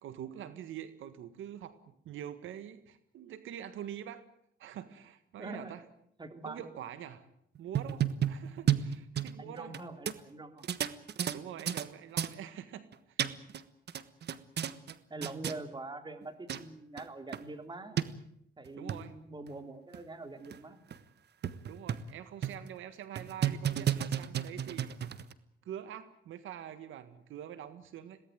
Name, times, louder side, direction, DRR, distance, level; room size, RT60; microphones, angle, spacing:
voice 1, 0.0-4.2 4.6-5.8 6.4-7.3 7.6-9.7 11.2-13.5 18.8-19.1 21.6-25.0 25.6-28.2, right 10 dB, 80° right, 12 dB, 1.7 m, -45 dB
voice 2, 5.4-5.7 6.2-6.7 9.4-10.7 15.1-18.1 18.6-20.8, right 2 dB, 20° right, 8 dB, 3.3 m, -44 dB
sound 1, 7.6-9.8 10.1-10.2 10.6-11.9 12.2-12.3 12.9-13.6 13.9-14.9 15.2-15.6 16.2-16.3 16.5-16.6 17.0-17.1 17.3-17.4 18.0-18.1 18.7-19.0 19.5-19.6 19.9-20.0 20.5-20.6 20.9-21.0 21.4-22.1 22.4-22.7 23.2-25.3, right 9 dB, 55° right, 1.4 m, -32 dB
22.5 x 18.0 x 9.4 m, 0.73 s
cardioid pair, 90°, 20 cm